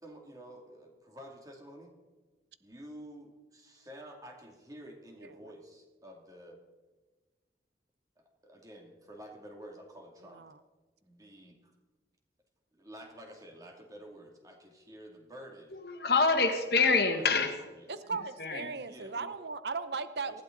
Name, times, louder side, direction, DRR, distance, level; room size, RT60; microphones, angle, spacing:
voice 1, 0.0-1.9 2.6-6.6 8.2-10.5 11.0-11.7 12.7-15.7 16.7-17.9 18.9-19.3 20.3-20.4, equal, 20° right, 1 dB, 2.5 m, -50 dB
voice 2, 15.7-17.5 18.4-18.7, left 4 dB, 60° left, 6 dB, 1.6 m, -26 dB
voice 3, 17.9-20.4, right 4 dB, 65° right, 12 dB, 0.8 m, -37 dB
19.5 x 15.0 x 3.9 m, 1.3 s
head